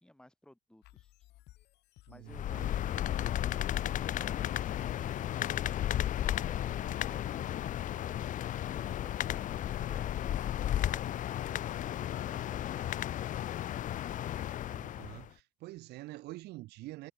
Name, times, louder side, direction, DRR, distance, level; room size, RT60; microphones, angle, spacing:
voice 1, 0.0-1.1, left 1 dB, 5° left, 2.5 m, -57 dB
sound 1, 0.8-11.7, left 16 dB, 80° left, 5.2 m, -62 dB
voice 2, 2.1-2.7 14.7-17.1, right 18 dB, 80° right, 0.6 m, -46 dB
sound 2, 2.3-15.3, left 12 dB, 50° left, 0.5 m, -34 dB
sound 3, 3.9-8.2 9.0-9.1, right 5 dB, 30° right, 6.9 m, -64 dB
cardioid pair, 110°, 17 cm